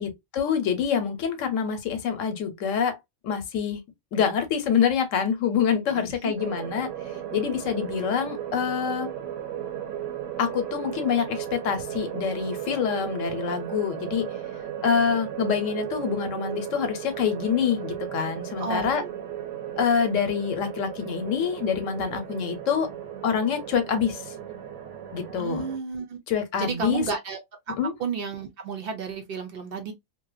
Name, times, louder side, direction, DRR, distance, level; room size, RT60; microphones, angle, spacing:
voice 1, 0.0-3.0 3.2-3.8 4.1-6.9 7.3-9.1 10.4-14.3 14.8-19.0 19.8-22.9 23.2-24.2 25.1-25.7 26.3-27.0 27.8-27.9, left 7 dB, 85° left, 1.1 m, -26 dB
voice 2, 5.9-6.3 18.6-19.1 25.4-26.2 26.6-27.4 27.7-27.8 28.0-29.9, right 5 dB, 60° right, 0.7 m, -32 dB
sound 1, 6.4-25.8, right 10 dB, 80° right, 1.0 m, -36 dB
2.7 x 2.1 x 2.3 m
omnidirectional pair, 1.3 m